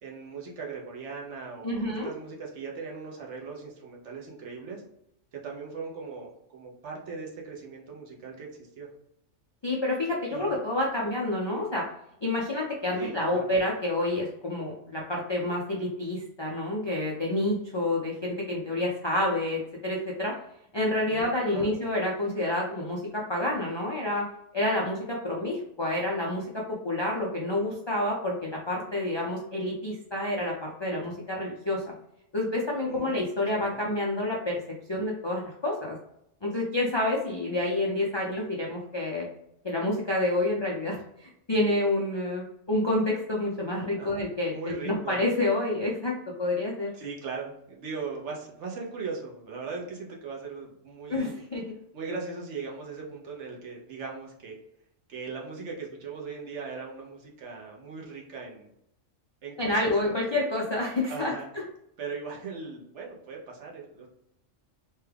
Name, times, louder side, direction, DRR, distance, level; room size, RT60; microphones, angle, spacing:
voice 1, 0.0-4.8 5.3-8.9 10.3-10.5 13.0-13.5 21.1-21.7 32.9-33.2 33.7-33.8 44.0-44.2 44.5-45.2 46.9-51.4 51.9-54.6 55.1-58.7 59.4-60.2 61.1-61.5 62.0-64.1, right 4 dB, 70° right, -1 dB, 1.1 m, -39 dB
voice 2, 1.6-2.1 9.6-11.9 12.2-20.3 20.7-24.3 24.5-31.8 32.3-34.6 34.9-36.0 36.4-39.3 39.6-46.9 51.1-51.6 59.6-61.3, left 1 dB, 45° left, -3 dB, 0.3 m, -28 dB
3.2 x 2.3 x 3.3 m, 0.77 s
omnidirectional pair, 1.3 m